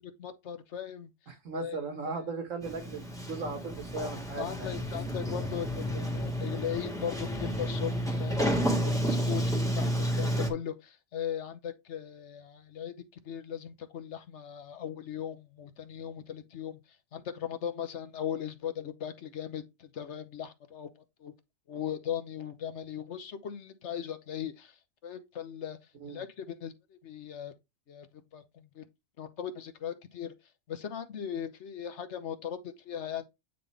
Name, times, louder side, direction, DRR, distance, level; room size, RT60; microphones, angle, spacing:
voice 1, 0.2-1.1 1.5-1.8 2.1-2.2 4.4-7.9 8.2-12.9 13.2-16.8 17.1-20.9 21.2-21.3 21.7-24.7 25.0-25.8 26.1-27.5 27.9-28.1 28.3-28.8 29.2-30.3 30.7-33.2, left 9 dB, 65° left, 1.2 m, -38 dB
voice 2, 1.3-4.8 26.0-26.2, right 4 dB, 90° right, 1.9 m, -37 dB
Sliding door, 2.6-10.5, equal, 5° left, 1.6 m, -31 dB
9.1 x 4.0 x 3.4 m
omnidirectional pair, 1.3 m